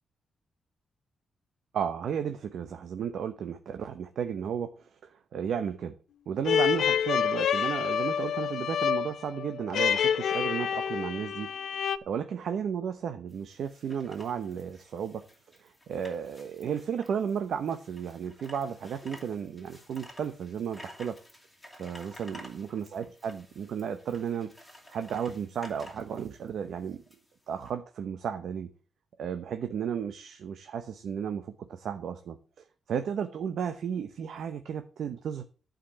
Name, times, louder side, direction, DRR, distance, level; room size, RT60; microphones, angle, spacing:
voice 1, 1.7-5.9 6.3-11.5 12.1-15.2 15.6-21.2 21.8-24.5 24.9-27.0 27.5-28.7 29.2-32.4 32.9-35.4, right 7 dB, 65° right, 7 dB, 0.9 m, -34 dB
sound 1, 6.4-12.0, left 8 dB, 65° left, 0.6 m, -28 dB
sound 2, 13.3-27.7, left 1 dB, 5° left, 2.6 m, -52 dB
11.5 x 5.2 x 7.5 m, 0.37 s
wide cardioid pair, 160°, 0 cm